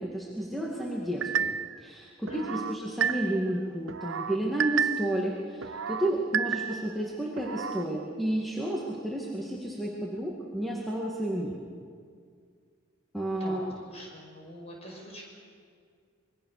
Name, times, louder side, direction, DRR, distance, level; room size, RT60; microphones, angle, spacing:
voice 1, 0.0-1.5 1.8-11.5 13.1-13.7, right 1 dB, ahead, -4 dB, 2.2 m, -31 dB
sound 1, 1.2-1.8 2.3-3.5 3.9-5.2 5.6-7.0 7.4-7.9, right 8 dB, 65° right, 0.6 m, -31 dB
voice 2, 2.3-2.6 13.4-15.2, equal, 30° left, -1 dB, 5.9 m, -44 dB
25.5 x 21.5 x 6.7 m, 2.1 s
head